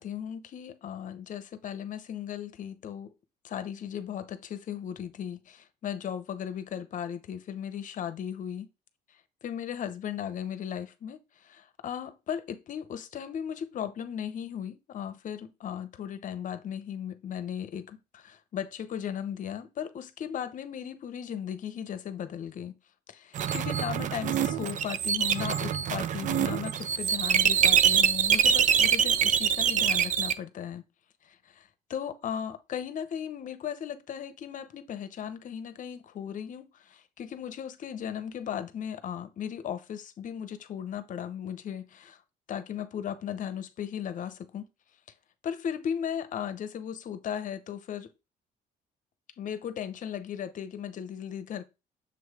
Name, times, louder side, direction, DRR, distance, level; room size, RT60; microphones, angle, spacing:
voice 1, 0.0-3.1 3.4-8.7 9.1-22.7 23.1-30.8 31.2-42.2 42.5-44.7 45.4-48.1 49.4-51.6, left 9 dB, 50° left, 0.8 m, -36 dB
sound 1, 23.4-30.3, right 8 dB, 50° right, 0.5 m, -25 dB
7.2 x 3.2 x 4.8 m
cardioid pair, 110°, 17 cm